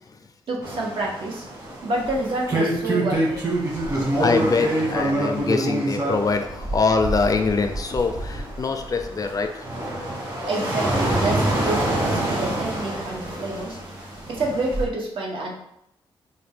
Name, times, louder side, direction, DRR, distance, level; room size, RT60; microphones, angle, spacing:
voice 1, 0.5-1.5 1.8-3.5 10.5-13.8 14.3-15.5, right 2 dB, 65° right, 0 dB, 0.9 m, -28 dB
sound 1, 0.6-14.8, right 1 dB, 35° right, 1.4 m, -26 dB
voice 2, 4.2-9.6, left 4 dB, 40° left, 6 dB, 0.4 m, -23 dB
4.0 x 2.2 x 3.4 m, 0.78 s
cardioid pair, 80°, 9 cm